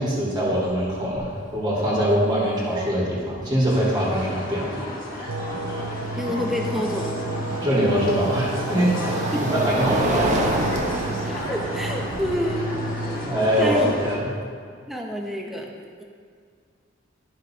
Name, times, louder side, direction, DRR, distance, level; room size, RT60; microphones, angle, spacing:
voice 1, 0.0-4.8 7.6-9.2 9.5-10.4 13.2-14.3, equal, 20° right, -6 dB, 1.8 m, -23 dB
sound 1, 0.5-0.7 1.0-1.4 3.2-3.3 6.3-14.4, right 1 dB, 40° right, 0.8 m, -29 dB
sound 2, 3.7-14.2, left 1 dB, 50° left, 1.7 m, -34 dB
sound 3, 5.3-13.3, right 2 dB, 85° right, 0.6 m, -31 dB
voice 2, 6.2-7.2 9.3-9.5 11.3-12.6 13.1-13.2 13.6-14.0 14.9-15.7, left 1 dB, ahead, 0 dB, 0.7 m, -28 dB
12.0 x 5.8 x 2.8 m, 2.1 s
head